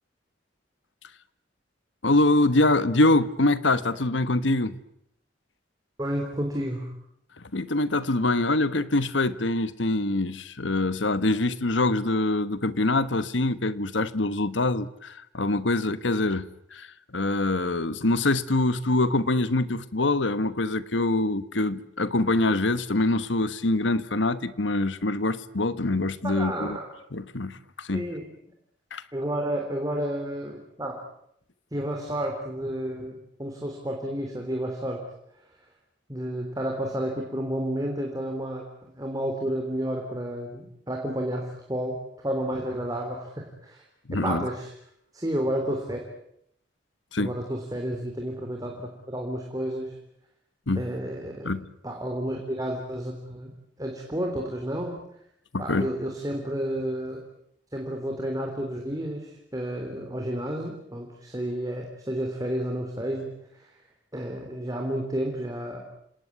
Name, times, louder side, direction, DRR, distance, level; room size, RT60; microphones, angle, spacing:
voice 1, 2.0-4.8 7.5-26.8 27.1-28.1 28.9-29.0 44.1-44.5 47.1-47.3 50.7-50.8 51.4-51.7 55.5-55.9, left 2 dB, 80° left, 15 dB, 1.4 m, -24 dB
voice 2, 6.0-6.9 26.2-26.9 27.9-28.3 29.1-31.0 31.7-35.0 36.1-43.8 44.1-44.7 45.1-46.0 47.2-49.9 50.7-51.5 51.8-53.5 53.8-55.0 55.6-57.2 57.7-63.3 64.1-65.8, right 1 dB, 20° right, 1 dB, 3.5 m, -31 dB
28.5 x 18.5 x 9.6 m, 0.73 s
head